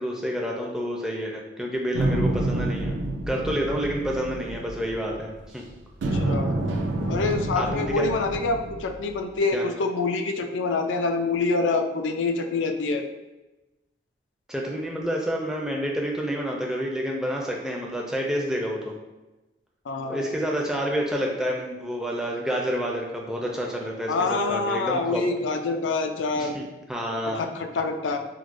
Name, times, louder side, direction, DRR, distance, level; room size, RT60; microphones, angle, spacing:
voice 1, 0.0-5.6 7.6-8.1 9.5-9.7 14.5-19.0 20.1-25.2 26.4-27.4, equal, 5° right, -2 dB, 0.4 m, -29 dB
sound 1, 1.9-5.5 6.0-9.3, right 2 dB, 80° right, 0.4 m, -28 dB
voice 2, 6.1-6.6 7.1-13.0 19.9-20.3 24.1-26.5 27.4-28.2, left 3 dB, 85° left, 5 dB, 0.4 m, -26 dB
4.5 x 2.1 x 2.5 m, 1.0 s
head